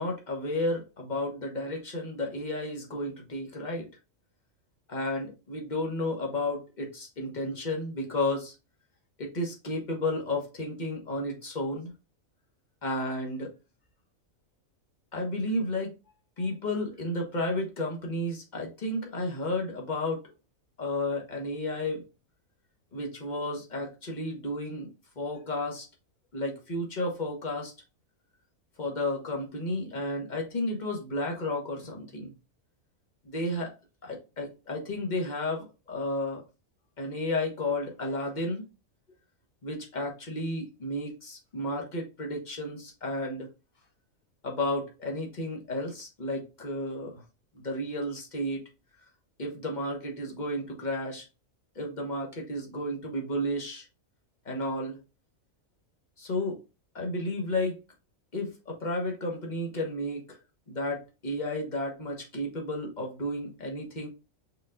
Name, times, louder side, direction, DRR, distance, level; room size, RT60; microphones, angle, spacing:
voice 1, 0.0-3.9 4.9-8.5 9.2-11.9 12.8-13.5 15.1-15.9 16.4-20.2 20.8-22.0 22.9-24.9 25.2-25.9 26.3-27.7 28.8-32.3 33.2-33.7 34.0-36.4 37.0-38.6 39.6-43.5 44.4-47.2 47.5-48.6 49.4-51.2 51.7-53.9 54.4-55.0 56.2-56.6 56.9-57.8 58.3-60.4 60.7-64.1, left 1 dB, 35° left, 1.3 m, -32 dB
5.0 x 4.2 x 2.5 m
omnidirectional pair, 1.4 m